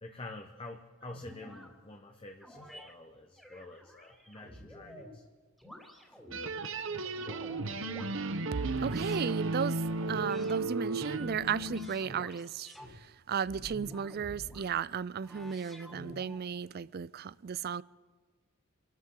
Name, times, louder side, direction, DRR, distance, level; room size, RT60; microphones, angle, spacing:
voice 1, 0.0-5.2 6.1-6.2, left 2 dB, 25° left, 3 dB, 1.0 m, -48 dB
sound 1, 1.0-1.7 2.4-2.9 3.4-5.2 5.6-6.5 7.0-8.1 8.8-9.4 10.0-10.6 11.1-12.9 13.4-14.7 15.2-16.5, equal, ahead, 2.7 m, -49 dB
sound 2, 6.3-11.9, right 2 dB, 65° right, 0.9 m, -34 dB
voice 2, 8.8-17.8, right 7 dB, 45° right, 20 dB, 0.4 m, -35 dB
27.0 x 13.5 x 3.9 m, 1.4 s
head